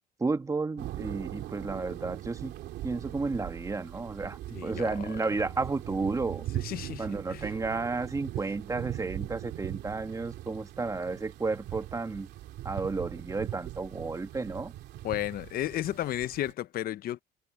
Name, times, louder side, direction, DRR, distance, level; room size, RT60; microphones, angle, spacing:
voice 1, 0.2-2.5 2.8-6.4 7.0-12.3 12.6-14.7, right 3 dB, 20° right, 1.7 m, -32 dB
sound 1, 0.8-16.5, right 14 dB, 80° right, 2.7 m, -40 dB
voice 2, 4.5-4.9 6.5-7.5 15.0-17.2, left 13 dB, 60° left, 0.8 m, -33 dB
cardioid pair, 110°, 17 cm